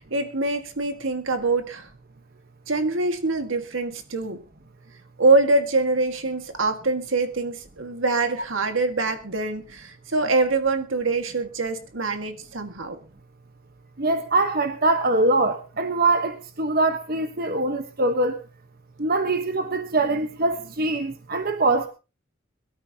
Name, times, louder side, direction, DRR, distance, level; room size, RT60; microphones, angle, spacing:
voice 1, 0.0-1.9 2.7-4.4 5.2-13.0, right 3 dB, 75° right, 7 dB, 1.9 m, -24 dB
voice 2, 14.0-18.4 19.0-21.9, right 2 dB, 50° right, 7 dB, 1.3 m, -23 dB
22.5 x 13.0 x 2.9 m, 0.31 s
head